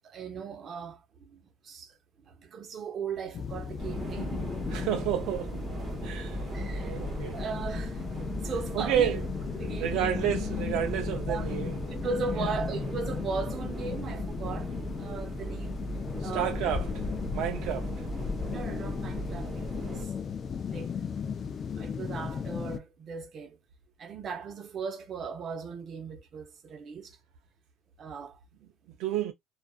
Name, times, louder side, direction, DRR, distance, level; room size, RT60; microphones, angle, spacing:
voice 1, 0.0-1.0 1.3-1.4 1.6-1.9 2.3-4.4 6.5-7.0 7.3-8.0 8.3-9.2 9.5-10.2 11.3-11.5 11.9-14.7 15.0-15.8 16.2-16.5 18.5-20.1 20.7-20.9 21.8-23.6 24.0-27.2 28.0-28.4, right 5 dB, 45° right, 0.8 m, -37 dB
sound 1, 3.3-22.8, left 6 dB, 35° left, 0.3 m, -36 dB
sound 2, 3.8-20.1, right 2 dB, 20° right, 1.1 m, -38 dB
voice 2, 4.7-6.4 6.8-7.4 8.7-9.2 9.8-11.7 16.2-17.1 17.3-17.9 29.0-29.3, right 10 dB, 70° right, 0.4 m, -30 dB
2.4 x 2.3 x 2.3 m
cardioid pair, 110°, 0 cm